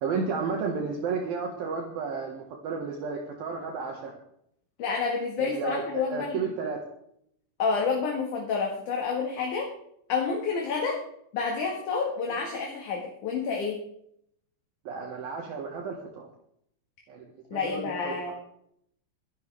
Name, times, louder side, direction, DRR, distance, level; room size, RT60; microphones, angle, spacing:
voice 1, 0.0-4.1 5.4-6.8 14.9-16.3 17.1-17.2 17.5-18.3, right 5 dB, 65° right, 1 dB, 3.2 m, -32 dB
voice 2, 4.8-6.5 7.6-9.7 10.1-11.0 11.3-13.8 17.5-18.3, left 5 dB, 55° left, 0 dB, 2.9 m, -29 dB
22.5 x 11.5 x 3.5 m, 0.72 s
omnidirectional pair, 4.7 m